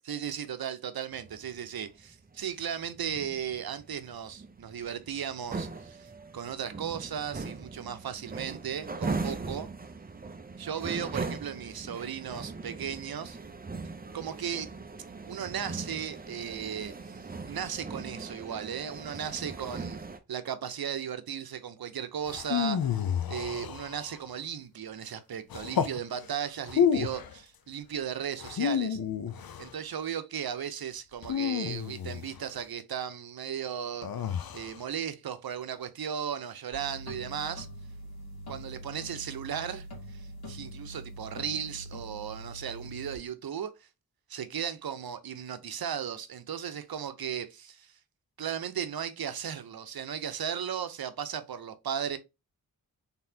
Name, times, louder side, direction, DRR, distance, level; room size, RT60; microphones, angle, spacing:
voice 1, 0.1-9.7 10.6-13.4 14.1-14.7 15.3-17.2 17.4-20.0 20.3-22.9 23.3-29.0 29.6-37.7 38.5-43.9 44.3-48.0 48.4-52.2, right 8 dB, 75° right, 0.7 m, -36 dB
sound 1, 1.1-20.2, right 3 dB, 25° right, 0.6 m, -40 dB
sound 2, 22.3-24.3 25.5-26.0 26.6-27.3 28.4-29.7 31.2-32.4 34.0-34.8, left 8 dB, 70° left, 0.6 m, -30 dB
sound 3, 36.7-43.2, equal, 90° left, 2.1 m, -43 dB
4.0 x 3.6 x 2.7 m
wide cardioid pair, 125°, 37 cm